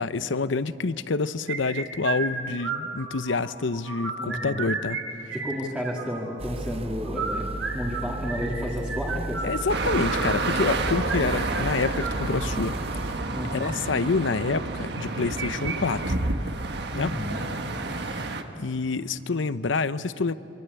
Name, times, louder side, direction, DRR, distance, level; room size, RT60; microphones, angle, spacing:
voice 1, 0.0-5.0 5.2-5.3 9.4-12.7 13.5-16.2 16.9-17.1 18.0-18.1 18.6-20.3, left 4 dB, 80° left, 14 dB, 0.8 m, -27 dB
sound 1, 1.5-3.4 3.7-5.0 5.3-6.3 7.0-12.6 13.4-13.7 14.9-15.8 16.0-16.1 16.6-16.7 17.3-17.6, right 5 dB, 90° right, 4.5 m, -33 dB
voice 2, 4.2-4.7 5.3-9.4 13.3-13.8 16.9-17.4, equal, 5° right, -4 dB, 2.2 m, -32 dB
sound 2, 6.4-13.2, right 2 dB, 30° right, 0.7 m, -35 dB
sound 3, 9.7-18.4, right 2 dB, 60° right, 1.6 m, -29 dB
27.0 x 24.5 x 8.2 m, 2.9 s
head